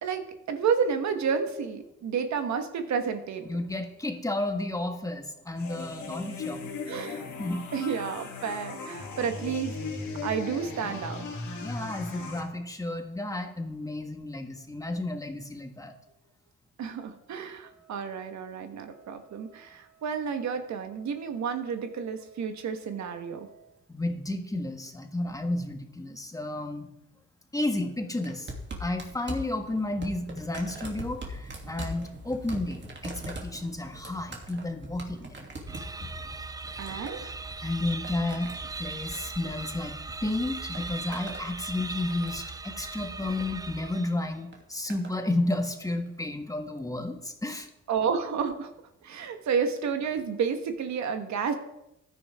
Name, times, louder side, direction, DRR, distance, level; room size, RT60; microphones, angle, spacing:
voice 1, 0.0-3.5 6.9-7.3 7.7-9.8 10.2-11.3 16.8-23.7 36.8-37.3 47.9-48.7 49.0-51.5, right 6 dB, 65° right, 7 dB, 1.4 m, -31 dB
voice 2, 3.4-6.6 7.4-7.6 11.6-15.9 23.9-26.9 27.5-28.5 28.8-35.5 36.0-36.1 37.6-38.5 38.8-40.0 40.2-47.7, left 2 dB, 10° left, 5 dB, 1.5 m, -32 dB
sound 1, 5.6-12.4, left 4 dB, 75° left, 3.0 m, -37 dB
sound 2, 28.2-40.2 40.4-41.5 41.8-42.5 43.5-43.7 44.5-45.2 46.1-46.2, right 1 dB, 35° right, 2.7 m, -42 dB
sound 3, 35.7-44.4, right 3 dB, 10° right, 0.5 m, -39 dB
15.0 x 10.5 x 3.6 m, 0.87 s
cardioid pair, 90°, 30 cm